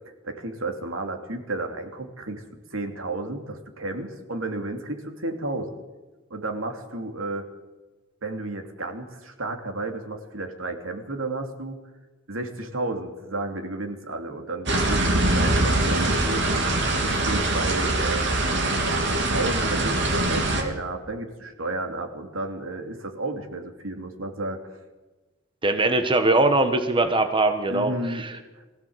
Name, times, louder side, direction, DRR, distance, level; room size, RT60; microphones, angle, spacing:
voice 1, 0.2-2.4 2.7-5.8 6.3-7.5 8.2-11.8 12.3-16.5 17.0-24.6 27.7-28.2 28.5-28.6, right 2 dB, 80° right, 4 dB, 2.9 m, -32 dB
sound 1, 14.7-20.6, right 2 dB, 60° right, 3.4 m, -23 dB
voice 2, 25.6-28.3, right 2 dB, 25° right, 7 dB, 1.4 m, -21 dB
22.5 x 16.0 x 8.0 m, 1.2 s
head